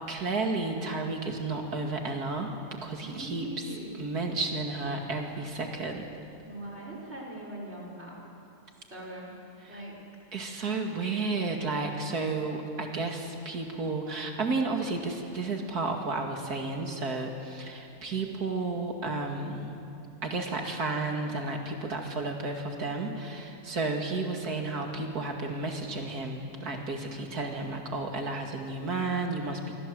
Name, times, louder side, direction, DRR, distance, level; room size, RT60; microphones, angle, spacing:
voice 1, 0.1-3.5 4.0-6.1 9.6-9.8 10.3-19.8 20.2-29.7, right 3 dB, 80° right, 2 dB, 2.8 m, -32 dB
voice 2, 3.0-4.0 6.4-8.1 8.9-9.4 9.7-10.0, right 1 dB, 45° right, -2 dB, 6.3 m, -41 dB
27.5 x 24.5 x 7.7 m, 2.7 s
omnidirectional pair, 1.6 m